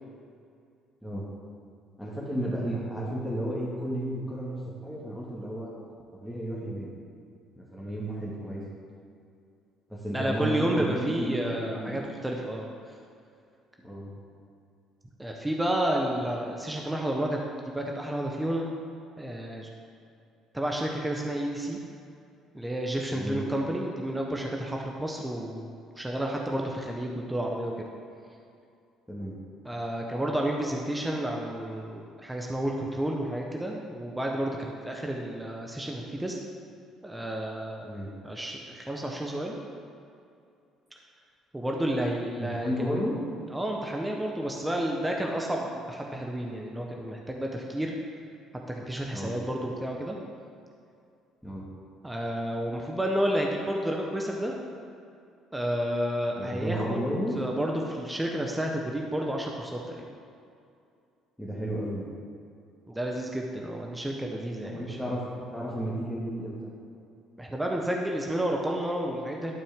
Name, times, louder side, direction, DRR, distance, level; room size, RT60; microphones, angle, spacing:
voice 1, 2.0-4.6 4.8-5.7 6.2-6.9 7.6-8.6 9.9-12.0 13.8-14.1 23.1-23.4 29.1-29.3 37.8-38.1 42.4-43.2 49.1-49.4 51.4-51.7 56.4-57.4 61.4-62.1 64.6-65.2 65.5-66.7, equal, 5° left, -7 dB, 1.8 m, -33 dB
voice 2, 10.1-12.7 15.2-17.4 17.7-18.7 19.2-19.7 20.5-21.8 22.5-27.7 29.6-36.4 37.0-37.9 38.2-39.6 41.5-43.0 43.5-48.0 48.8-50.2 52.0-54.5 55.5-57.0 57.3-60.1 62.9-65.0 67.4-69.5, right 1 dB, 10° right, 0 dB, 0.9 m, -31 dB
12.0 x 4.4 x 3.6 m, 2.5 s
hypercardioid pair, 65°, 0 cm